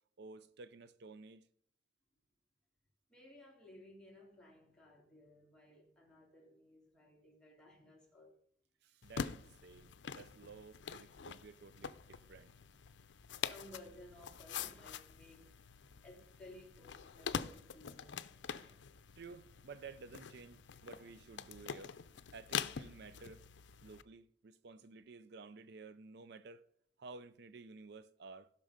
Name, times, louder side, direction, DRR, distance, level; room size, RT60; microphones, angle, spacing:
voice 1, 0.2-1.5 8.8-12.5 19.2-22.0 22.3-23.4 23.8-26.6 27.0-28.5, right 4 dB, 65° right, 0.5 m, -53 dB
voice 2, 3.1-8.3 13.1-15.5 16.0-18.9, left 1 dB, 5° left, 3.3 m, -58 dB
sound 1, 9.0-24.0, left 7 dB, 85° left, 0.5 m, -45 dB
15.5 x 6.1 x 5.1 m
head